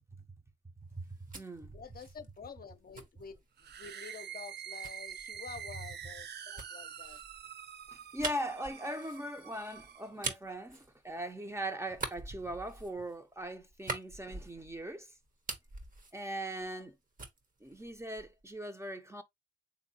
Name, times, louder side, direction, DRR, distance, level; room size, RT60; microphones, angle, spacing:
voice 1, 0.9-1.8 7.9-15.1 16.1-17.0 17.6-19.2, right 1 dB, 15° right, 0.6 m, -40 dB
sound 1, 0.9-3.9 4.8-11.5 11.9-14.9 15.2-16.9 17.2-18.5, right 3 dB, 45° right, 1.0 m, -44 dB
voice 2, 1.7-7.2 16.6-16.9, left 5 dB, 55° left, 0.6 m, -49 dB
sound 2, 3.6-10.1, right 8 dB, 65° right, 0.4 m, -46 dB
3.5 x 2.7 x 2.7 m
cardioid pair, 55°, 19 cm